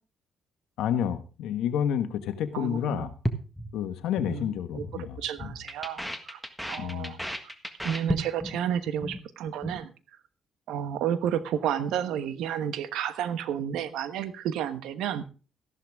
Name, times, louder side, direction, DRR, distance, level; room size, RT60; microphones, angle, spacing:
voice 1, 0.8-3.1 3.7-5.5 6.8-7.1, left 9 dB, 85° left, 9 dB, 1.3 m, -30 dB
voice 2, 2.5-3.1 4.3-6.4 6.7-7.2 7.8-9.9 10.7-15.2, right 9 dB, 90° right, 12 dB, 1.1 m, -31 dB
sound 1, 3.2-4.4 4.6-5.0 5.2-8.6 8.9-9.2 9.5-9.8, equal, ahead, 1.6 m, -33 dB
14.0 x 11.5 x 3.6 m, 0.35 s
cardioid pair, 90°, 0 cm